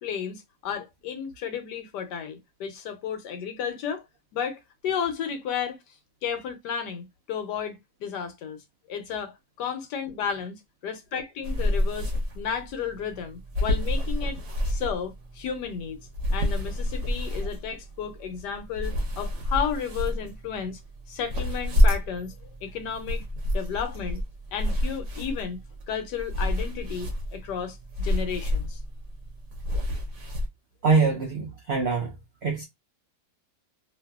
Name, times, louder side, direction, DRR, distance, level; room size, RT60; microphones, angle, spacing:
voice 1, 0.0-4.0 4.3-5.8 6.2-8.6 8.9-14.4 14.7-16.0 16.3-20.8 21.1-23.2 23.5-24.2 24.5-25.6 25.9-28.8, left 7 dB, 80° left, 1.3 m, -33 dB
sound 1, 11.4-30.5, left 1 dB, 55° right, 1.0 m, -29 dB
voice 2, 30.8-32.2 32.4-32.6, right 4 dB, 75° right, 0.6 m, -24 dB
2.8 x 2.6 x 2.3 m
omnidirectional pair, 1.8 m